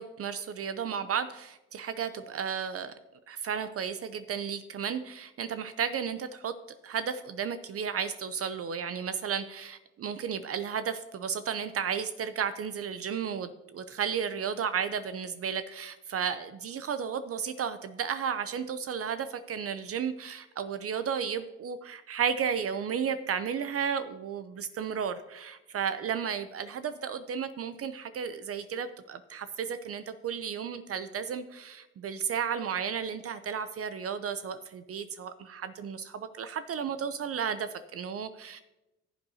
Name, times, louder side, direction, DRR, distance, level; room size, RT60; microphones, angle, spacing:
voice 1, 0.0-2.9 3.3-6.5 6.8-38.6, right 7 dB, 50° right, 11 dB, 0.6 m, -33 dB
14.5 x 8.0 x 2.8 m, 0.99 s
cardioid pair, 90°, 30 cm